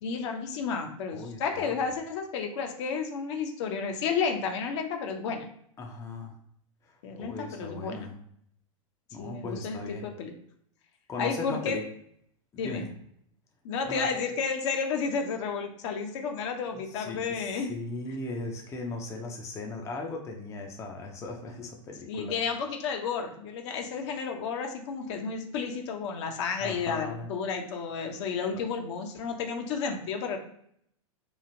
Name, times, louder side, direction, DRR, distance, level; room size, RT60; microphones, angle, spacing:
voice 1, 0.0-5.5 7.0-8.1 9.2-10.3 11.2-11.8 12.6-12.8 13.6-17.7 22.1-30.4, left 5 dB, 55° left, 4 dB, 0.7 m, -32 dB
voice 2, 1.1-1.9 5.8-6.4 6.8-8.2 9.1-10.1 11.1-11.8 12.5-12.9 13.9-14.1 17.0-22.3 26.6-27.3 28.5-28.6, left 3 dB, 15° left, 1 dB, 0.5 m, -38 dB
3.1 x 2.4 x 2.6 m, 0.68 s
hypercardioid pair, 105°, 17 cm